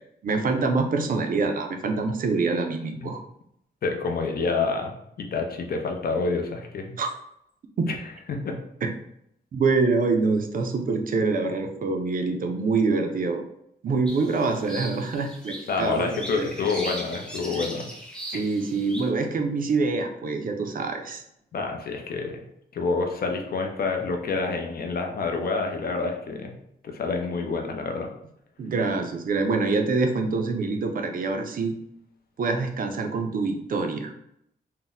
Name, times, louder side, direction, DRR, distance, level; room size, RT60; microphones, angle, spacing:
voice 1, 0.2-3.2 7.0-7.1 9.5-13.4 13.8-16.5 18.3-21.2 28.6-31.7 32.4-34.1, right 4 dB, 55° right, 4 dB, 0.4 m, -25 dB
voice 2, 3.8-4.9 5.2-6.9 7.9-8.0 8.3-8.6 15.7-17.9 18.3-18.4 21.5-22.4 22.7-26.5 26.8-28.1, left 4 dB, 60° left, 3 dB, 0.5 m, -28 dB
sound 1, 14.1-19.1, equal, 5° left, 0.4 m, -38 dB
2.6 x 2.0 x 3.8 m, 0.75 s
wide cardioid pair, 165°, 17 cm